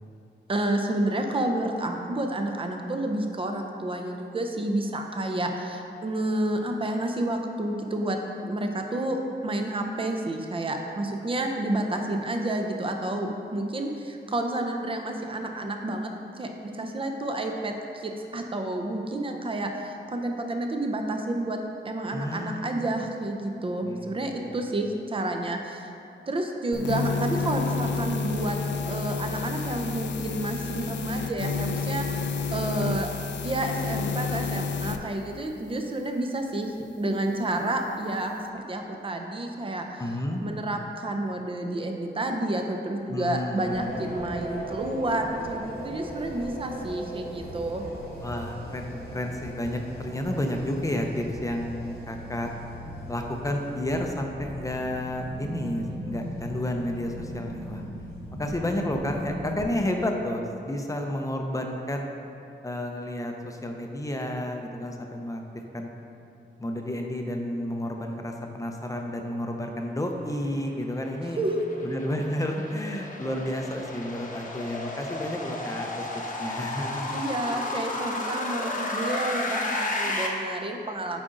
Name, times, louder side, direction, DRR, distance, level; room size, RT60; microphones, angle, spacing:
voice 1, 0.5-16.1 16.3-21.6 21.8-25.9 26.3-28.6 28.9-33.1 33.4-39.9 40.4-47.8 71.4-71.7 77.1-81.2, right 1 dB, 30° right, 3 dB, 0.6 m, -30 dB
voice 2, 22.1-23.0 23.8-24.6 40.0-40.4 43.1-44.1 48.2-52.5 53.1-57.8 58.4-62.1 62.6-65.4 65.7-65.9 66.6-71.4 71.8-76.1 76.4-77.2, left 1 dB, 20° left, 2 dB, 0.5 m, -31 dB
sound 1, 26.7-35.0, left 5 dB, 75° left, 0.4 m, -30 dB
sound 2, 43.6-59.6, right 1 dB, 55° right, 1.8 m, -38 dB
sound 3, 70.7-80.3, left 2 dB, 45° left, 0.8 m, -33 dB
8.4 x 5.1 x 3.8 m, 2.6 s
wide cardioid pair, 165°, 19 cm